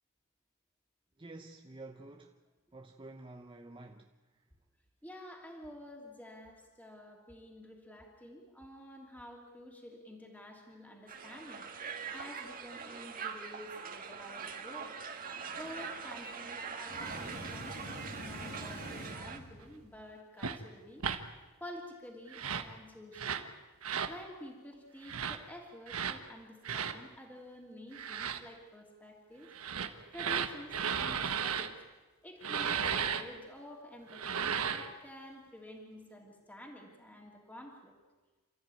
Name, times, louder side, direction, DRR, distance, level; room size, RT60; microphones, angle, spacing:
voice 1, 1.2-2.4 2.7-4.1, right 2 dB, 25° right, 3 dB, 1.0 m, -49 dB
voice 2, 5.0-15.0 15.5-21.0 21.6-23.5 24.0-29.5 30.1-31.8 32.2-37.9, left 1 dB, 10° left, 0 dB, 3.0 m, -50 dB
Crowd, 11.1-19.4, right 6 dB, 40° right, 1.8 m, -43 dB
sound 1, 16.8-20.0, left 1 dB, 50° left, 2.7 m, -46 dB
sound 2, 20.4-20.6 21.0-21.2 22.3-22.7 23.1-23.5 23.8-24.1 25.0-25.4 25.9-26.2 26.6-27.0 27.9-28.4 29.5-31.7 32.4-33.2 34.1-34.9, right 7 dB, 75° right, 1.4 m, -34 dB
28.5 x 14.0 x 9.2 m, 1.2 s
head